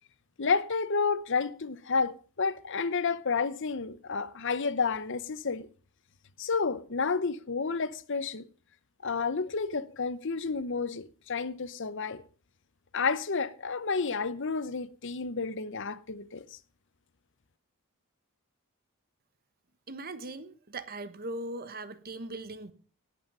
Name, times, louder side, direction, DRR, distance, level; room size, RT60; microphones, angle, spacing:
voice 1, 0.4-5.7 6.4-8.4 9.0-12.2 12.9-16.6, left 4 dB, 55° left, 0.8 m, -30 dB
voice 2, 19.9-22.7, right 2 dB, 40° right, 1.1 m, -39 dB
18.0 x 8.6 x 5.5 m
head